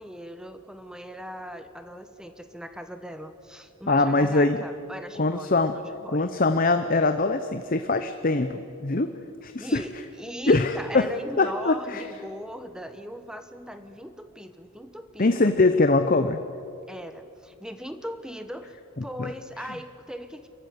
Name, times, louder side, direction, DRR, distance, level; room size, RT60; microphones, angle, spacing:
voice 1, 0.0-6.3 9.6-15.5 16.9-20.5, equal, 5° right, 9 dB, 1.1 m, -39 dB
voice 2, 3.9-4.6 5.2-5.7 6.1-9.1 9.4-9.8 10.5-11.1 11.4-12.0 15.2-16.4 19.2-19.3, left 3 dB, 40° left, 9 dB, 0.8 m, -22 dB
26.0 x 15.0 x 9.6 m, 2.5 s
head